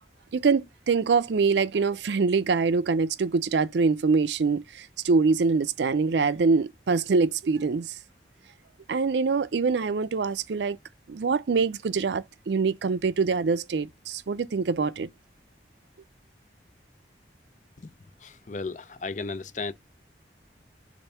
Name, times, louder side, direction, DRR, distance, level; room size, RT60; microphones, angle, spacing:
voice 1, 0.3-8.0 8.9-10.8 11.1-15.1, right 4 dB, 75° right, 0.4 m, -24 dB
voice 2, 18.2-19.7, left 4 dB, 45° left, 0.5 m, -34 dB
6.8 x 2.6 x 5.4 m
head